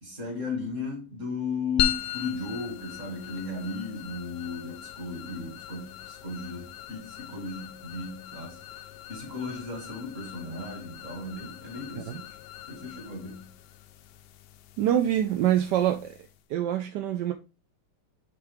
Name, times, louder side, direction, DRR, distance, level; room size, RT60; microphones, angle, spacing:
voice 1, 0.0-12.3 12.7-13.5, left 3 dB, 35° right, 2.5 m, -36 dB
sound 1, 1.8-16.5, left 12 dB, 75° left, 1.0 m, -38 dB
voice 2, 14.8-16.2 16.5-17.3, right 11 dB, 70° right, 1.1 m, -25 dB
8.6 x 3.8 x 3.5 m
omnidirectional pair, 2.2 m